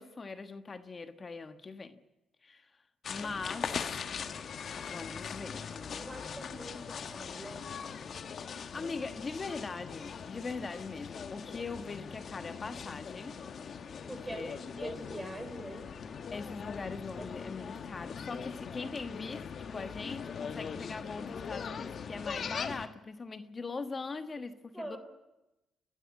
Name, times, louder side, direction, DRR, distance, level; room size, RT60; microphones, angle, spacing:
voice 1, 0.0-2.0 2.4-2.7 3.1-4.0 4.8-6.1 8.3-13.4 14.3-14.6 16.3-25.0, left 4 dB, 35° left, 1.3 m, -41 dB
sound 1, 3.0-22.9, left 6 dB, 55° left, 1.2 m, -41 dB
voice 2, 6.0-7.7 14.1-15.9 17.2-17.3 24.7-25.0, right 1 dB, 10° right, 5.5 m, -43 dB
29.0 x 12.5 x 9.5 m
cardioid pair, 90°, 0 cm